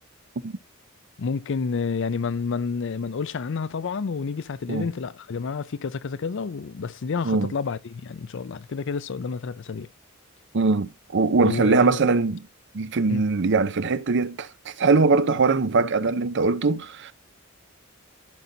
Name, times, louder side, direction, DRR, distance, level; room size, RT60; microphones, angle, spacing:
voice 1, 1.2-9.9 11.4-12.2 13.1-13.2, left 5 dB, 65° left, 0.5 m, -29 dB
voice 2, 10.5-12.4 12.7-17.1, right 4 dB, 60° right, 0.6 m, -22 dB
15.5 x 5.3 x 2.7 m
head